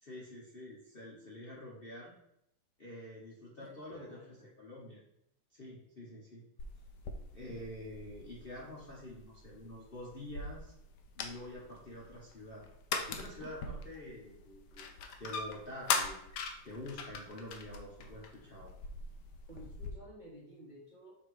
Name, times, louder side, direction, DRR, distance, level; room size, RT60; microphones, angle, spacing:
voice 1, 0.0-2.2 2.8-4.2 4.6-5.0 5.5-6.4 7.3-10.7 11.2-12.6 13.1-14.9 15.2-16.2 16.6-18.7, left 1 dB, 35° left, -5 dB, 1.1 m, -47 dB
voice 2, 3.6-4.5 19.5-21.2, equal, 30° right, -6 dB, 1.0 m, -53 dB
sound 1, 6.6-19.9, left 4 dB, 70° left, 1.1 m, -41 dB
6.5 x 3.1 x 4.8 m, 0.77 s
omnidirectional pair, 2.2 m